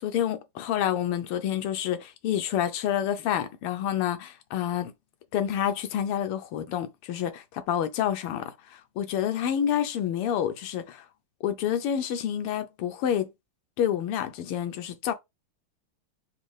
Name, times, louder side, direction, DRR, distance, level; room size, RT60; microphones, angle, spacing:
voice 1, 0.0-4.9 5.3-11.1 11.4-13.3 13.8-15.1, left 10 dB, 90° left, 1.7 m, -28 dB
4.3 x 2.4 x 4.8 m
omnidirectional pair, 2.4 m